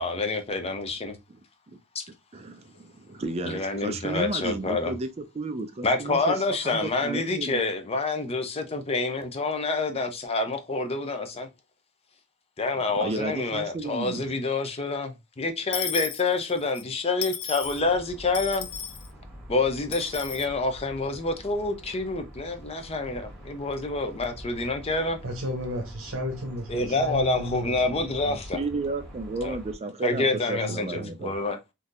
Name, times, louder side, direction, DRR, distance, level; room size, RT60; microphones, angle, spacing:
voice 1, 0.0-1.2 1.9-2.0 3.5-4.9 5.8-11.5 12.6-18.7 19.5-25.2 26.7-28.6 29.4-29.6 30.0-31.6, left 3 dB, 30° left, 0.5 m, -27 dB
voice 2, 2.3-6.4 6.6-7.7 12.7-14.2 28.5-31.6, right 2 dB, 30° right, 0.4 m, -33 dB
Dishes pots and pans / Coin (dropping), 15.7-16.8 17.2-17.8 18.3-19.1 19.9-20.5, left 8 dB, 90° left, 0.5 m, -34 dB
sound 1, 17.6-29.8, equal, ahead, 2.0 m, -45 dB
voice 3, 25.2-28.0 28.3-28.4 30.1-30.2 30.5-31.1, equal, 80° right, 0.8 m, -33 dB
3.7 x 2.7 x 2.5 m
head